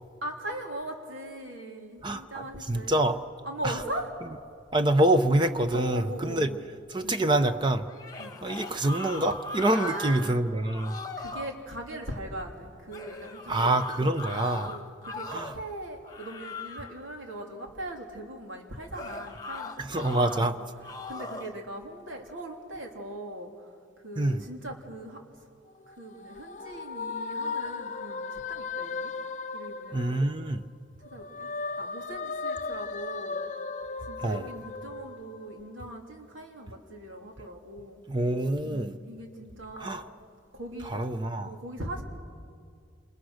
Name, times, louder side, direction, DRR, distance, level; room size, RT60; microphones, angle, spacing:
voice 1, 0.2-3.0 3.4-4.1 5.7-6.6 7.0-7.2 8.2-8.4 9.7-10.4 11.2-13.6 14.0-14.1 14.7-20.5 21.1-23.7 24.0-25.2 25.9-29.1 29.5-30.3 31.0-31.5 31.8-33.4 34.1-38.0 38.6-40.0 40.5-41.0 41.4-42.0, right 1 dB, 85° right, 2 dB, 3.3 m, -40 dB
voice 2, 2.0-3.2 3.6-3.8 4.7-6.5 6.9-7.9 8.4-11.0 13.5-14.7 15.3-15.5 19.8-20.5 24.2-24.4 29.9-30.6 34.2-34.5 38.1-39.0 39.8-40.0 40.8-41.5, right 1 dB, 25° right, 9 dB, 0.7 m, -26 dB
sound 1, 7.9-10.3 10.6-11.5 12.9-15.6 16.0-17.0 18.9-20.4 20.8-21.6, left 3 dB, 20° left, 1.4 m, -39 dB
sound 2, 25.7-30.7 31.0-35.8, left 4 dB, 40° left, 0.6 m, -36 dB
27.5 x 27.5 x 6.5 m, 2.3 s
head